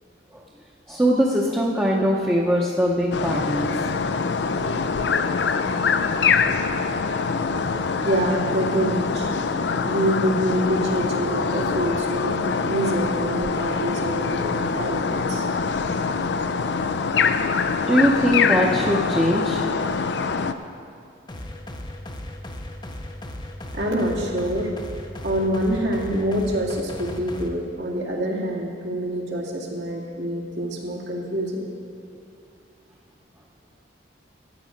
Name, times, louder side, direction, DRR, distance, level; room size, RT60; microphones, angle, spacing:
voice 1, 0.9-3.7 17.9-19.6, equal, 10° right, -3 dB, 0.8 m, -21 dB
sound 1, 3.1-20.5, left 5 dB, 65° left, 0.5 m, -24 dB
voice 2, 8.0-9.3 9.8-12.4 12.6-15.4 23.7-24.7 25.2-31.7, equal, 75° right, -2 dB, 2.1 m, -26 dB
sound 2, 21.3-27.5, left 1 dB, 25° left, 0.6 m, -36 dB
14.0 x 8.7 x 5.1 m, 2.4 s
head